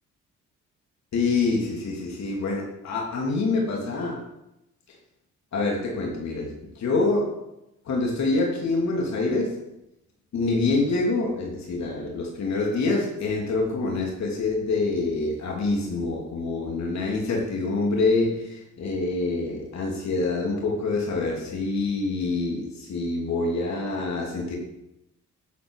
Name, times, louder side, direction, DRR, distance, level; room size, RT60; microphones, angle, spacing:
voice 1, 1.1-4.2 4.9-5.0 5.5-7.3 7.8-9.6 10.3-24.6, left 3 dB, 65° left, -1 dB, 3.0 m, -26 dB
17.0 x 7.7 x 4.9 m, 0.89 s
cardioid pair, 90°, 30 cm